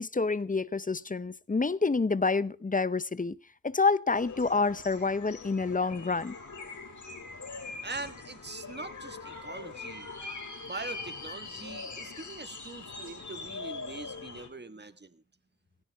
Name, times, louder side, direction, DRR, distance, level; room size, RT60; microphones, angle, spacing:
voice 1, 0.0-3.4 3.6-6.3, left 4 dB, 25° left, 0.6 m, -28 dB
sound 1, 4.1-14.5, left 3 dB, 55° left, 3.4 m, -42 dB
voice 2, 7.8-10.1 10.6-15.2, right 3 dB, 30° right, 1.4 m, -42 dB
17.0 x 17.0 x 3.5 m
wide cardioid pair, 85°, 35 cm